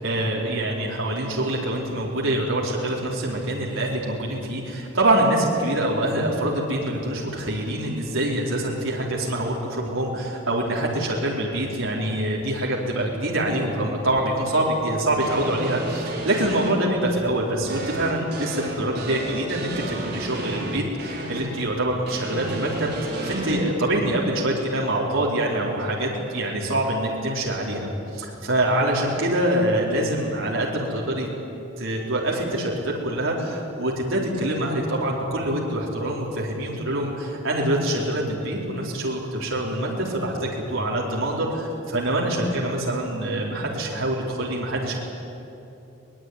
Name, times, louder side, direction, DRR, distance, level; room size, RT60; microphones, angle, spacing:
voice 1, 0.0-31.3 31.8-45.0, right 1 dB, 75° right, -3 dB, 4.3 m, -25 dB
crazy guitar, 15.2-16.7 17.7-21.4 22.1-23.6, right 2 dB, 50° right, 5.3 m, -32 dB
22.5 x 20.0 x 9.7 m, 2.9 s
head